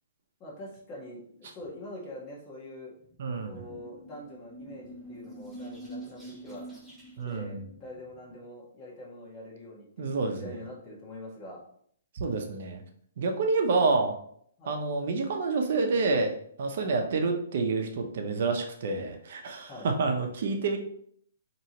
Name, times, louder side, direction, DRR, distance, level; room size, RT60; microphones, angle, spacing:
voice 1, 0.4-2.9 3.4-6.7 7.2-10.1 10.3-11.6 13.3-13.4 13.8-13.9 14.6-14.8 16.8-17.0 19.7-19.9, left 1 dB, 20° left, -4 dB, 1.3 m, -44 dB
sound 1, 3.0-8.4, right 1 dB, ahead, 0.8 m, -46 dB
voice 2, 3.2-3.6 7.2-7.6 10.0-10.5 12.1-12.8 13.2-14.2 14.6-20.8, right 3 dB, 55° right, 4 dB, 0.8 m, -28 dB
4.4 x 3.0 x 2.9 m, 0.65 s
hypercardioid pair, 160°, 0 cm